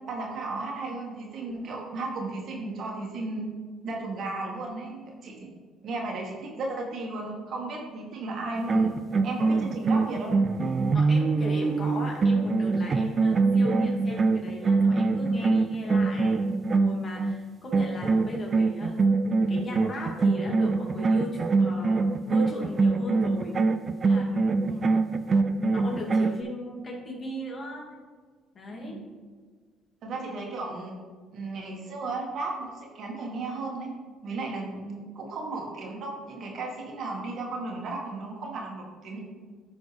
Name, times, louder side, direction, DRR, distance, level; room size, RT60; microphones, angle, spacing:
voice 1, 0.1-3.5 3.8-5.5 5.8-8.9 9.2-10.3 24.7-24.9 28.7-29.0 30.0-31.0 31.3-33.9 34.2-39.2, right 3 dB, 60° right, 0 dB, 1.7 m, -34 dB
sound 1, 8.5-17.4 17.7-26.4, right 3 dB, 40° right, 0.4 m, -24 dB
voice 2, 10.9-16.4 16.7-23.6 24.0-24.7 25.5-28.0 28.5-29.0, left 1 dB, 40° left, -1 dB, 2.1 m, -38 dB
11.0 x 4.1 x 3.4 m, 1.5 s
supercardioid pair, 65°, 0 cm